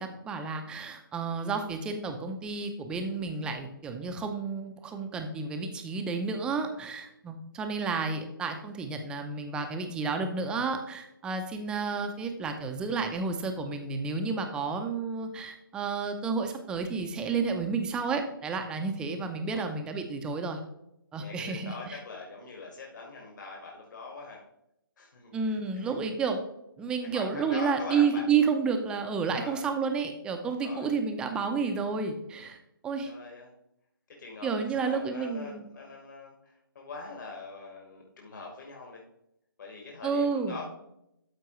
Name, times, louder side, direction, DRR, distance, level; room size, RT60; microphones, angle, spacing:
voice 1, 0.0-20.6 21.1-22.0 25.3-26.4 26.8-32.6 32.8-33.1 34.4-35.6 40.0-40.6, right 5 dB, 5° right, 5 dB, 0.5 m, -31 dB
voice 2, 21.1-24.4 25.0-25.9 27.1-28.5 29.3-29.7 30.5-30.9 33.1-33.5 34.1-39.0 39.6-40.7, left 3 dB, 55° left, 0 dB, 1.9 m, -43 dB
12.5 x 4.4 x 3.1 m, 0.82 s
figure-of-eight pair, 145°, 12 cm